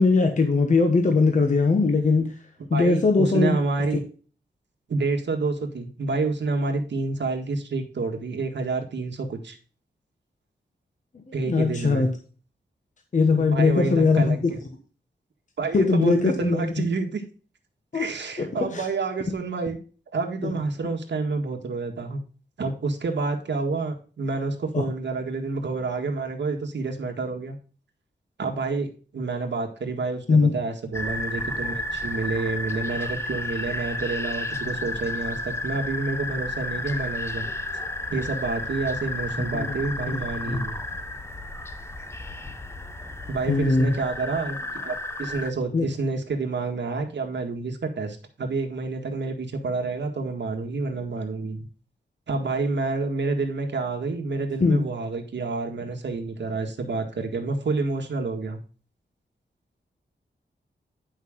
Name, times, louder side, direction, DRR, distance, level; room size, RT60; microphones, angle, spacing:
voice 1, 0.0-2.3 2.7-3.5 11.3-12.1 13.1-14.5 15.7-16.8 17.9-18.1 18.4-18.9 20.4-20.5 24.7-24.8 30.3-30.5 39.4-39.7 40.1-40.2 40.5-40.7 43.5-43.9 45.7-45.8 54.6-54.8, left 4 dB, 45° left, 4 dB, 1.2 m, -21 dB
voice 2, 2.7-4.0 4.9-9.6 11.3-12.1 13.5-14.6 15.6-17.2 17.9-19.8 20.1-22.2 22.6-27.6 28.4-28.9 29.1-37.5 38.1-40.8 43.3-51.6 52.3-58.6, right 3 dB, 80° right, 3 dB, 1.8 m, -28 dB
sound 1, 30.9-45.5, left 2 dB, 15° left, 0.7 m, -32 dB
10.5 x 5.7 x 3.7 m, 0.38 s
wide cardioid pair, 180°, 18 cm